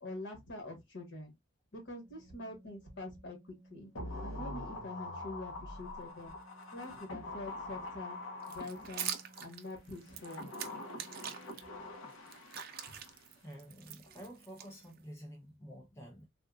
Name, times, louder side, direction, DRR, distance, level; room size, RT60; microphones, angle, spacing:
voice 1, 0.0-1.3 1.7-3.9 4.2-6.4 6.7-8.2 8.5-9.1 9.4-10.4, left 2 dB, 60° left, 1.3 m, -45 dB
Organ, 1.8-12.4, right 1 dB, 35° left, 1.1 m, -60 dB
sound 1, 4.0-9.4 10.0-13.3 13.6-13.7, left 2 dB, 75° left, 1.0 m, -45 dB
sound 2, 8.4-11.6 12.1-15.2, right 10 dB, 45° right, 0.4 m, -44 dB
voice 2, 13.4-16.3, equal, 15° left, 0.6 m, -50 dB
3.7 x 2.4 x 2.3 m
head